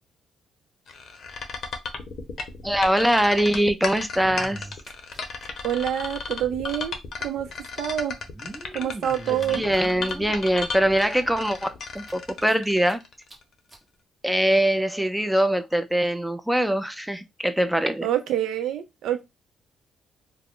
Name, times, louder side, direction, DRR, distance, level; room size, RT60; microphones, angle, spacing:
sound 1, 0.9-13.4, left 4 dB, 60° left, 0.6 m, -34 dB
voice 1, 2.6-4.7 9.3-11.7 11.9-13.0 14.2-18.1, right 1 dB, 5° right, 0.4 m, -23 dB
sound 2, 4.1-5.5 5.7-5.8 6.0-6.1 7.2-7.3 8.1-10.4 11.0-11.1 11.5-11.6 12.0-12.9 13.3-13.4 13.7-13.8 14.6-14.7, right 2 dB, 25° right, 0.9 m, -42 dB
voice 2, 5.6-7.5 7.8-8.1 8.7-9.6 18.0-19.2, right 10 dB, 75° right, 0.4 m, -27 dB
2.3 x 2.0 x 3.5 m
cardioid pair, 90°, 0 cm